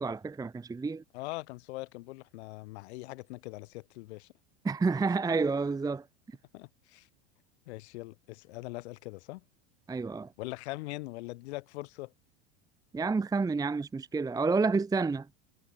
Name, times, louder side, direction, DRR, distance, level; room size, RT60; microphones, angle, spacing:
voice 1, 0.0-1.0 4.6-6.4 9.9-10.3 12.9-15.4, right 4 dB, 10° right, 0.8 m, -29 dB
voice 2, 1.1-4.3 6.5-7.1 7.7-9.4 10.4-12.1, left 21 dB, 65° left, 5.6 m, -41 dB
hypercardioid pair, 90°, 35 cm